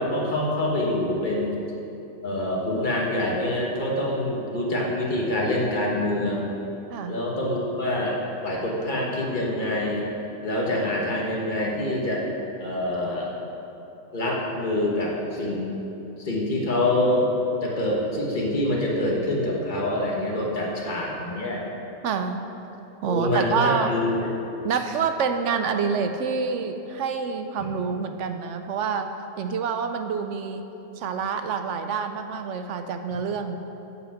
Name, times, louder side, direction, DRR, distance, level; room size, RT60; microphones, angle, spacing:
voice 1, 0.0-1.5 2.2-6.5 7.1-10.1 10.4-12.3 12.6-13.3 14.1-15.8 16.2-17.3 17.6-21.6 23.1-24.3, left 1 dB, 40° left, -3 dB, 1.4 m, -26 dB
voice 2, 22.0-22.4 23.0-23.9 24.6-29.1 29.4-30.6 31.0-33.6, right 6 dB, 70° right, 7 dB, 0.9 m, -27 dB
8.3 x 5.0 x 7.1 m, 2.9 s
omnidirectional pair, 1.4 m